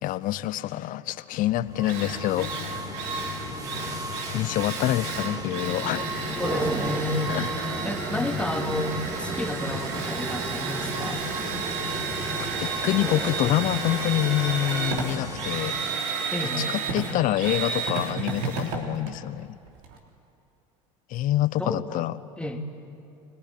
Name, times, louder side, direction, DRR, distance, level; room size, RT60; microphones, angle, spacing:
voice 1, 0.0-2.8 4.3-6.1 7.3-7.5 12.4-15.8 16.6-19.6 21.1-22.2, left 14 dB, 50° left, 16 dB, 0.8 m, -26 dB
Drill, 1.4-1.5 1.8-20.0, right 5 dB, 65° right, 3.5 m, -32 dB
sound 1, 1.5-15.8, left 9 dB, 65° left, 2.4 m, -40 dB
sound 2, 1.7-16.5, right 2 dB, 20° right, 2.6 m, -35 dB
voice 2, 6.4-7.4 7.8-11.2 16.3-16.7 21.6-22.1 22.4-22.6, left 1 dB, 5° left, 3 dB, 2.5 m, -31 dB
24.5 x 20.0 x 9.5 m, 2.6 s
hypercardioid pair, 80°, 18 cm